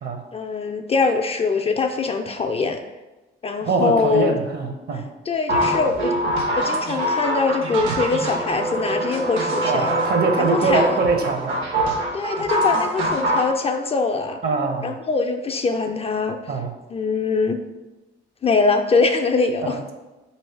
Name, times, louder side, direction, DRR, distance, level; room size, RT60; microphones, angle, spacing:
voice 1, 0.3-2.8 3.4-4.3 5.3-6.2 6.6-9.9 10.4-11.0 12.1-14.4 14.8-16.4 16.9-17.6 18.4-19.8, left 4 dB, 30° left, 6 dB, 0.3 m, -22 dB
voice 2, 3.6-5.0 9.6-11.6 14.4-14.9 16.5-16.7 19.6-19.9, right 3 dB, 55° right, 4 dB, 0.8 m, -23 dB
sound 1, 5.5-13.5, right 1 dB, 75° right, 0.9 m, -24 dB
3.1 x 3.1 x 4.5 m, 1.1 s
cardioid pair, 90°, 20 cm